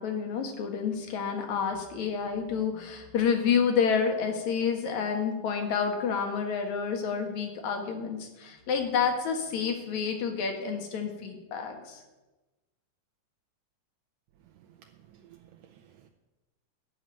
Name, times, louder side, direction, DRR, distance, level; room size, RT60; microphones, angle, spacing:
voice 1, 0.0-12.0, left 6 dB, 65° left, 4 dB, 2.7 m, -29 dB
voice 2, 14.4-16.1, right 10 dB, 80° right, 3 dB, 2.3 m, -57 dB
12.5 x 6.0 x 9.2 m, 1.1 s
omnidirectional pair, 3.8 m